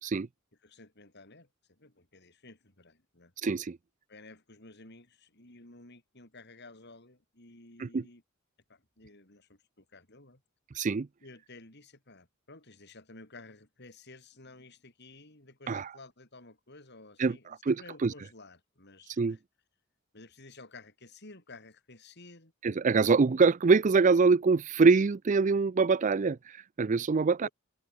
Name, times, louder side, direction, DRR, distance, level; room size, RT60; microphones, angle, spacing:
voice 1, 0.6-3.3 4.1-8.2 8.7-10.4 11.2-19.4 20.1-22.5 27.4-27.5, left 2 dB, 55° left, 5.8 m, -53 dB
voice 2, 3.4-3.8 7.8-8.0 10.7-11.1 15.7-15.9 17.2-18.1 19.2-19.4 22.6-27.5, right 4 dB, 40° right, 0.4 m, -24 dB
open air
head